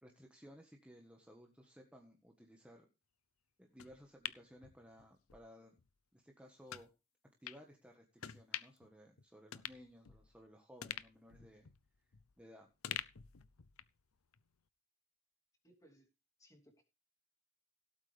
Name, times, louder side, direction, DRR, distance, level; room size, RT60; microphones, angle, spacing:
voice 1, 0.0-2.9 3.6-5.8 6.1-6.9 7.4-11.7 12.4-12.7, equal, 5° right, 1 dB, 1.5 m, -59 dB
sound 1, 3.8-5.4 5.8-5.9 6.7-6.9 7.4-7.6 8.2-8.9 9.2-9.3 9.5-10.4 10.8-12.4 12.8-14.0 14.3-14.4, left 11 dB, 85° left, 0.7 m, -47 dB
voice 2, 15.6-16.1 16.4-16.8, equal, 15° left, 2 dB, 3.1 m, -65 dB
17.0 x 8.4 x 3.4 m, 0.29 s
head